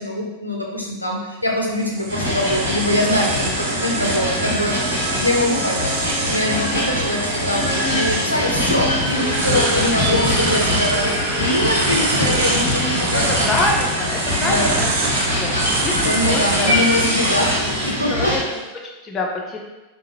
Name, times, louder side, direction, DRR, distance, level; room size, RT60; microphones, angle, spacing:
voice 1, 0.0-4.8 5.2-5.9 6.3-13.5 14.4-14.8 15.9-18.4, left 1 dB, 90° left, -1 dB, 0.5 m, -23 dB
sound 1, 1.4-18.6, right 3 dB, 55° right, 0.5 m, -28 dB
sound 2, 2.1-18.4, left 1 dB, 85° right, 1.4 m, -22 dB
sound 3, 9.2-17.5, right 1 dB, 20° right, 1.1 m, -35 dB
voice 2, 13.1-14.9 15.4-15.5 15.8-17.0 17.3-17.5 18.1-18.4 18.8-19.6, left 2 dB, 25° left, -1 dB, 0.6 m, -26 dB
3.7 x 2.5 x 2.8 m, 1.1 s
figure-of-eight pair, 90°, 0 cm